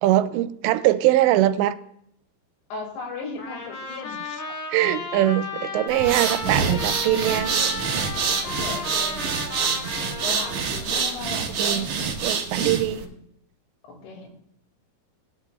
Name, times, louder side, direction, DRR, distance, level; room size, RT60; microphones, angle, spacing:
voice 1, 0.0-1.8 4.7-7.5 11.6-11.9 12.2-13.0, right 14 dB, 90° right, 12 dB, 2.8 m, -22 dB
voice 2, 2.7-4.2 6.5-7.0 8.4-11.9 12.9-13.1 13.8-14.3, left 3 dB, 90° left, 2 dB, 4.5 m, -37 dB
Trumpet, 3.4-10.8, left 3 dB, 70° left, 3.8 m, -34 dB
sound 1, 5.9-13.0, right 5 dB, 65° right, 1.9 m, -26 dB
19.0 x 10.5 x 2.3 m, 0.73 s
omnidirectional pair, 5.0 m